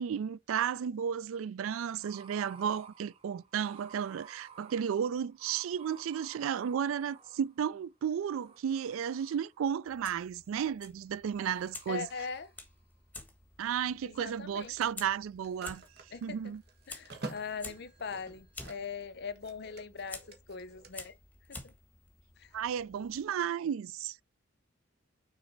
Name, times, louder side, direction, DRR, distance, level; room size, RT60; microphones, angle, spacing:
voice 1, 0.0-12.1 13.6-15.8 16.2-16.6 22.5-24.2, right 8 dB, 90° right, 0.3 m, -33 dB
sound 1, 1.9-7.9 8.4-9.7 11.5-12.6, right 5 dB, 30° right, 0.8 m, -55 dB
Fire, 9.9-23.2, left 2 dB, 10° left, 1.4 m, -51 dB
voice 2, 11.9-12.5 14.0-14.8 16.1-16.5 16.9-20.2 20.5-21.1 21.5-21.7 22.4-22.5, left 5 dB, 55° left, 0.7 m, -41 dB
Telephone, 12.0-12.2 14.2-19.0 19.3-20.9, right 2 dB, 50° right, 1.4 m, -49 dB
6.4 x 4.2 x 4.4 m
head